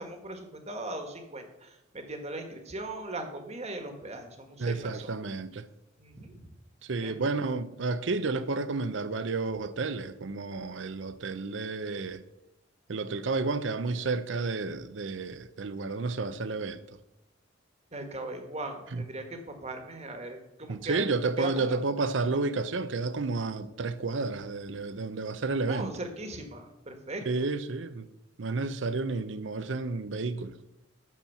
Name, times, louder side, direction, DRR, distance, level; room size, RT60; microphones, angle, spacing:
voice 1, 0.0-5.1 6.0-6.5 7.0-7.2 17.9-21.8 25.7-27.4, right 2 dB, 35° right, 1.5 m, -39 dB
voice 2, 4.6-5.7 6.8-12.2 12.9-16.8 18.9-19.0 20.7-25.9 27.2-28.1 28.4-30.6, right 3 dB, 70° right, 0.6 m, -31 dB
11.5 x 4.4 x 7.1 m
head